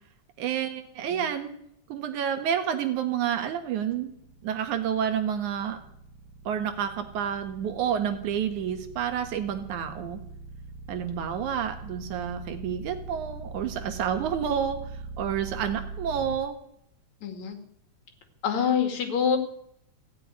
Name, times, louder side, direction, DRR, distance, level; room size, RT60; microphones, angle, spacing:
voice 1, 0.4-1.5 1.9-4.1 4.4-5.8 6.5-10.2 10.9-14.8 15.2-16.5, right 8 dB, 80° right, 8 dB, 2.8 m, -29 dB
sound 1, 3.1-16.4, right 4 dB, 45° right, 2.2 m, -42 dB
voice 2, 17.2-17.6 18.4-19.4, left 7 dB, 70° left, 5 dB, 3.3 m, -26 dB
16.0 x 7.8 x 9.6 m, 0.73 s
omnidirectional pair, 3.4 m